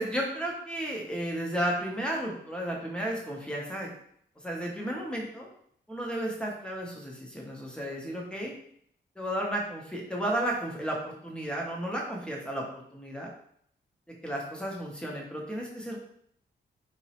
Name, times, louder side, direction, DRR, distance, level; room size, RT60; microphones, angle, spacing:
voice 1, 0.0-3.9 4.4-5.5 5.9-8.5 9.2-13.3 14.2-16.0, right 1 dB, 5° left, -2 dB, 0.6 m, -33 dB
3.7 x 2.0 x 2.8 m, 0.68 s
wide cardioid pair, 165°, 19 cm